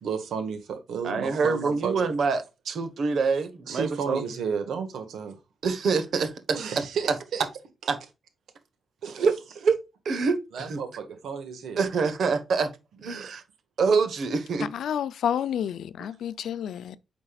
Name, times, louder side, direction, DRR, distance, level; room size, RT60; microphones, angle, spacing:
voice 1, 0.0-2.1 3.7-5.4 6.5-7.4 9.0-9.2 10.5-11.8 13.2-13.3, right 6 dB, 85° right, 1.6 m, -32 dB
voice 2, 1.0-4.2 5.6-6.3 7.9-8.0 9.1-9.8 10.0-10.8 11.8-12.7 13.0-13.4 13.8-14.7, right 4 dB, 55° right, 1.2 m, -25 dB
voice 3, 14.6-17.0, left 9 dB, 85° left, 0.5 m, -30 dB
8.9 x 5.3 x 2.4 m
wide cardioid pair, 165°, 0 cm